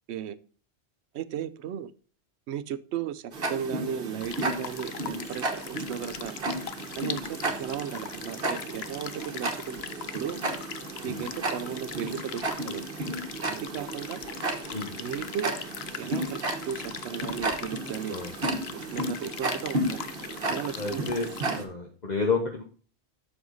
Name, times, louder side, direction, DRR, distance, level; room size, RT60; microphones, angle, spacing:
voice 1, 1.1-1.9 2.5-6.4 7.0-9.8 10.1-10.4 11.0-12.8 13.5-14.2 15.0-15.5 15.9-18.2 18.7-20.0 20.5-21.1, right 8 dB, 75° right, 16 dB, 0.9 m, -35 dB
Tick-tock, 3.3-21.6, right 2 dB, 55° right, 1.4 m, -33 dB
sound 1, 4.2-21.4, left 8 dB, 65° left, 0.9 m, -41 dB
voice 2, 20.8-21.3 21.6-22.6, left 4 dB, 40° left, 2 dB, 1.1 m, -30 dB
7.8 x 6.5 x 3.9 m, 0.40 s
omnidirectional pair, 1.2 m